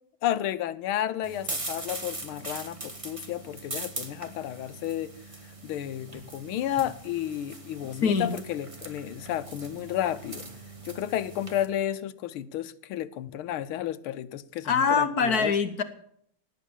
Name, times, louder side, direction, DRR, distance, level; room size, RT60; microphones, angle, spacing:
voice 1, 0.2-5.1 5.6-10.5 10.9-15.5, left 11 dB, 85° left, 1.6 m, -32 dB
sound 1, 1.2-11.6, right 2 dB, 20° right, 1.2 m, -41 dB
voice 2, 8.0-8.4 14.6-15.8, left 5 dB, 50° left, 1.5 m, -24 dB
18.5 x 8.4 x 7.1 m
omnidirectional pair, 2.3 m